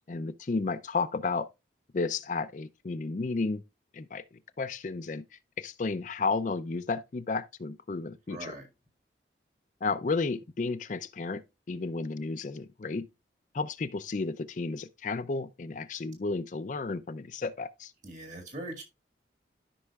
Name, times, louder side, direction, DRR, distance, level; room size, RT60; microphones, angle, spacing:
voice 1, 0.0-1.5 1.9-3.6 3.9-4.2 4.6-5.2 5.6-8.5 9.8-11.4 11.7-13.1 13.5-17.9, left 3 dB, 45° left, 0.4 m, -32 dB
voice 2, 8.3-8.7 18.0-18.8, right 1 dB, 45° right, 1.9 m, -41 dB
13.0 x 5.5 x 2.3 m
head